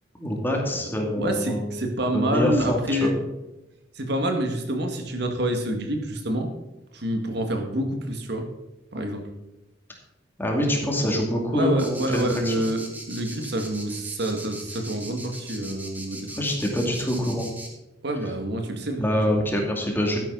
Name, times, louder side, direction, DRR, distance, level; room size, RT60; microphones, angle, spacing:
voice 1, 0.1-1.7 2.1-3.1 10.4-12.6 16.4-17.5 19.0-20.2, equal, 10° left, 0 dB, 2.5 m, -25 dB
voice 2, 0.7-3.1 4.0-6.5 6.9-8.5 8.9-9.2 11.5-12.8 13.1-16.4 18.0-19.4, right 1 dB, 60° right, 4 dB, 2.0 m, -27 dB
sound 1, 11.8-17.7, right 1 dB, 10° right, 2.4 m, -39 dB
13.0 x 10.5 x 4.0 m, 1.0 s
head